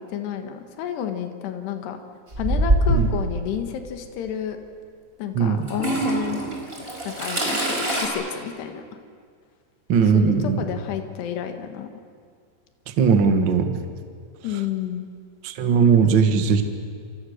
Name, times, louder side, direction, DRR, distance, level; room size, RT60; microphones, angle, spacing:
voice 1, 0.0-2.0 2.4-4.6 5.2-6.4 7.1-8.8 10.0-11.9 14.4-15.1, left 9 dB, 80° left, 6 dB, 3.7 m, -31 dB
Toilet flush / Trickle dribble, 2.3-3.2 4.3-4.4 5.7-8.1, right 1 dB, 15° right, 4.3 m, -23 dB
voice 2, 5.3-5.7 9.9-10.6 13.0-13.7 15.4-16.6, right 6 dB, 85° right, 7 dB, 1.0 m, -18 dB
28.5 x 27.0 x 6.6 m, 2.1 s
omnidirectional pair, 4.8 m